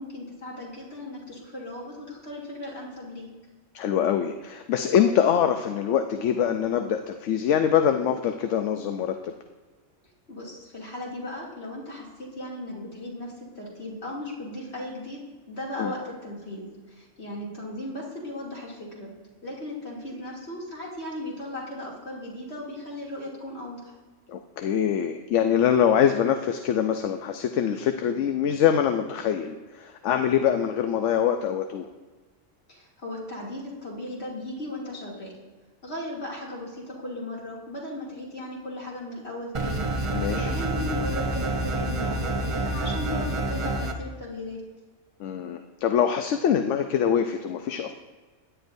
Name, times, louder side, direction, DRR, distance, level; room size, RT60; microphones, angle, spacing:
voice 1, 0.0-3.3 10.3-15.2 15.5-19.1 19.4-23.9 32.7-35.3 35.8-39.9 40.3-44.6, left 1 dB, 60° left, -4 dB, 3.0 m, -36 dB
voice 2, 3.7-9.3 15.8-15.9 24.3-31.9 40.1-40.5 45.2-47.9, left 9 dB, 75° left, 7 dB, 0.9 m, -24 dB
sound 1, 39.5-43.9, right 2 dB, 30° right, 0.7 m, -28 dB
16.5 x 10.0 x 2.6 m, 1.3 s
omnidirectional pair, 1.3 m